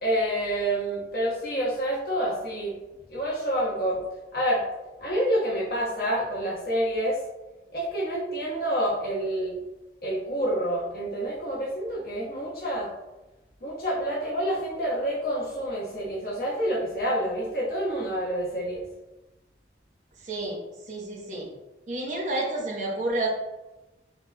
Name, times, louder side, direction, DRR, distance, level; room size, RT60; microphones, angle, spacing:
voice 1, 0.0-2.8 3.1-4.0 4.3-4.6 5.0-7.2 7.7-9.5 10.0-12.9 13.6-18.8, equal, 55° left, -4 dB, 1.3 m, -28 dB
voice 2, 20.2-20.6 20.8-21.5 21.9-23.3, right 2 dB, 45° right, -2 dB, 1.0 m, -30 dB
7.1 x 3.1 x 2.3 m, 1.0 s
head